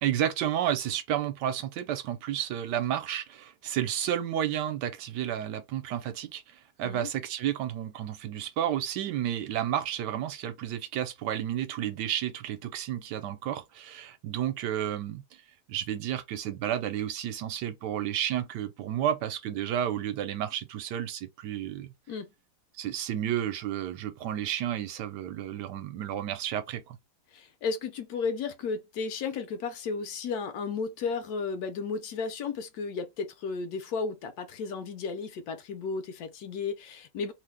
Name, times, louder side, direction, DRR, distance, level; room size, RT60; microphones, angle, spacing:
voice 1, 0.0-15.2 15.7-21.9 22.8-27.0, right 11 dB, 80° right, 1.2 m, -31 dB
voice 2, 27.3-37.3, left 5 dB, 75° left, 1.0 m, -34 dB
3.0 x 2.0 x 3.4 m
omnidirectional pair, 1.8 m